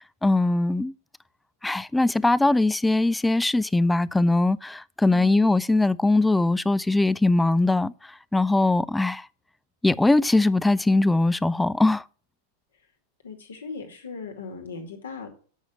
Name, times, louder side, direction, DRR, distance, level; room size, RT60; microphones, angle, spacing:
voice 1, 0.2-0.9 1.6-7.9 8.3-9.3 9.8-12.0, left 2 dB, 5° left, 0.3 m, -21 dB
voice 2, 5.0-5.5 13.2-15.3, left 4 dB, 65° left, 2.3 m, -38 dB
8.7 x 6.4 x 6.2 m
figure-of-eight pair, 90°, 0 cm